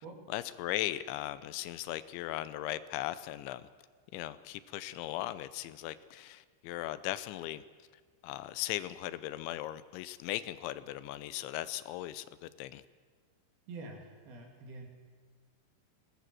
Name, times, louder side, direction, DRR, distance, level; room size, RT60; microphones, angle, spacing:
voice 1, 0.3-3.7 4.1-7.6 8.2-12.8, left 14 dB, 85° left, 15 dB, 3.0 m, -38 dB
voice 2, 13.7-14.9, right 3 dB, 60° right, 2 dB, 4.3 m, -46 dB
21.0 x 18.0 x 7.7 m, 1.5 s
omnidirectional pair, 5.3 m